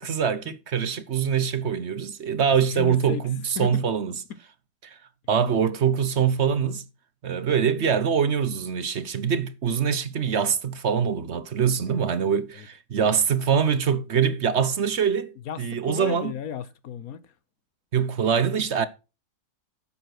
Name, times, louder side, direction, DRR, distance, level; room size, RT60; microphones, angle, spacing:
voice 1, 0.0-4.1 4.8-5.0 5.3-6.8 7.2-15.3 15.6-16.3 17.9-18.9, right 7 dB, 55° right, 1.0 m, -24 dB
voice 2, 2.7-3.3 3.6-3.8 4.3-4.4 11.9-12.7 15.4-17.3, left 7 dB, 65° left, 1.3 m, -35 dB
9.9 x 7.2 x 6.0 m
omnidirectional pair, 1.6 m